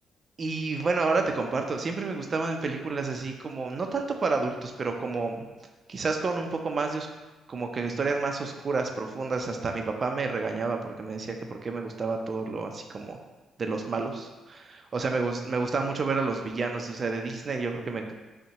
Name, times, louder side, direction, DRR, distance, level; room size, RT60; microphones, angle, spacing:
voice 1, 0.4-5.5 5.9-7.1 7.5-11.3 11.6-13.2 13.6-14.6 14.9-18.1, right 4 dB, 40° right, 4 dB, 0.5 m, -29 dB
5.4 x 2.1 x 2.9 m, 1.2 s
cardioid pair, 90°, 0 cm